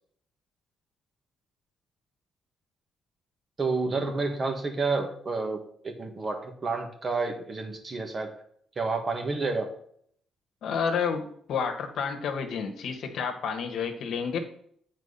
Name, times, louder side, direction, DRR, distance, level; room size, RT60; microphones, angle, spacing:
voice 1, 3.6-8.3 8.7-9.7, right 3 dB, 35° right, 4 dB, 1.7 m, -30 dB
voice 2, 10.6-14.4, left 6 dB, 70° left, 5 dB, 1.3 m, -30 dB
8.3 x 4.5 x 5.5 m, 0.65 s
cardioid pair, 90°, 0 cm